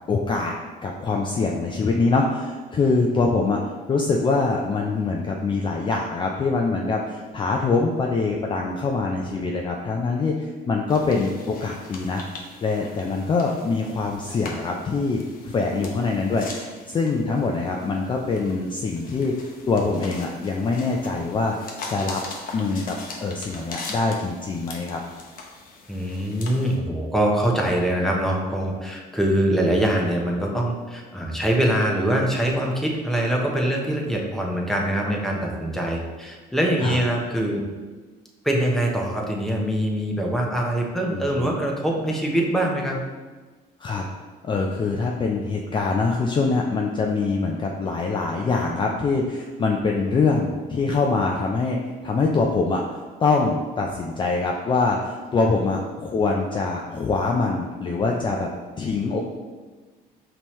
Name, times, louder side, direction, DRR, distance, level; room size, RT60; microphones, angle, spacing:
voice 1, 0.1-0.5 0.8-19.3 19.7-22.2 22.5-25.0 36.8-37.0 41.1-41.5 43.8-44.0 44.4-58.5 58.8-59.2, left 3 dB, 30° left, 0 dB, 0.4 m, -24 dB
sound 1, 10.9-26.8, left 3 dB, 55° left, 0.8 m, -41 dB
voice 2, 25.9-37.6 38.4-43.0, right 1 dB, ahead, -1 dB, 0.7 m, -23 dB
5.3 x 2.9 x 3.1 m, 1.3 s
cardioid pair, 110°, 17 cm